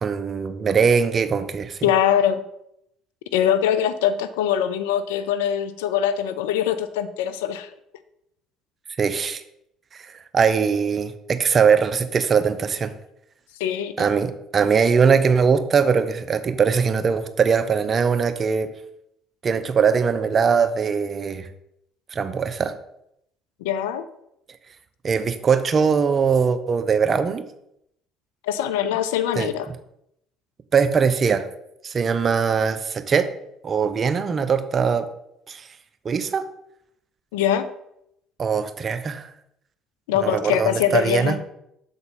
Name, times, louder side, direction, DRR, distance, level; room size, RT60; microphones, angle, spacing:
voice 1, 0.0-1.9 9.0-9.4 10.0-12.9 14.0-18.7 19.4-21.5 22.1-22.7 25.0-27.4 29.3-29.8 30.7-31.5 31.8-33.3 33.6-35.1 35.5-35.7 36.0-36.5 38.4-39.3 40.1-41.4, right 6 dB, 40° right, 10 dB, 0.7 m, -21 dB
voice 2, 1.8-2.4 3.3-7.7 13.6-13.9 23.6-24.0 28.5-29.7 37.3-37.7 40.1-41.3, left 10 dB, 85° left, 12 dB, 0.5 m, -22 dB
7.0 x 4.1 x 5.3 m, 0.78 s
hypercardioid pair, 70°, 0 cm